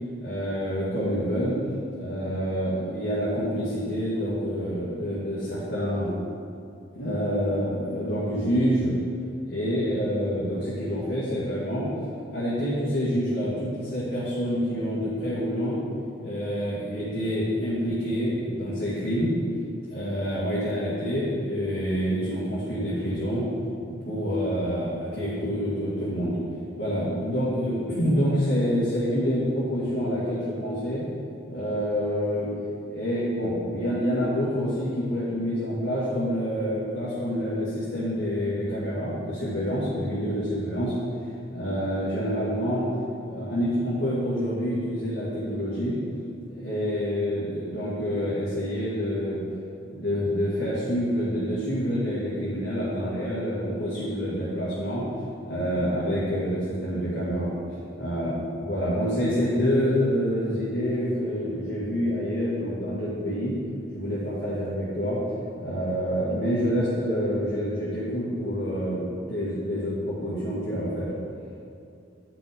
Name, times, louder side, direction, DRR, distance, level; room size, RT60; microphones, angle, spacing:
voice 1, 0.2-1.6 1.9-6.1 7.0-9.0 9.4-11.9 12.3-15.8 16.2-19.3 19.9-23.4 24.0-26.4 26.8-31.0 31.5-32.5 32.9-40.9 41.5-42.9 43.2-46.0 46.5-49.4 49.9-55.0 55.4-57.6 58.0-63.6 63.9-65.2 65.6-71.1, equal, 60° left, -10 dB, 2.1 m, -27 dB
9.2 x 5.9 x 5.1 m, 2.5 s
head